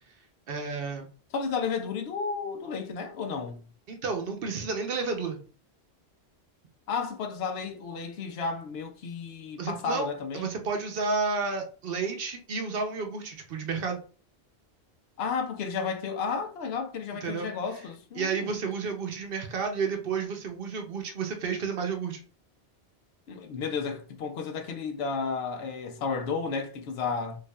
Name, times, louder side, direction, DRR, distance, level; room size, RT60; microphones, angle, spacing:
voice 1, 0.5-1.1 3.9-5.4 9.6-10.1 10.3-14.0 17.2-17.5 18.2-22.2, right 5 dB, 60° right, 0.8 m, -31 dB
voice 2, 1.3-3.6 6.9-10.5 15.2-18.5 23.3-27.4, left 5 dB, 70° left, 0.8 m, -32 dB
4.7 x 2.5 x 2.3 m
omnidirectional pair, 1.1 m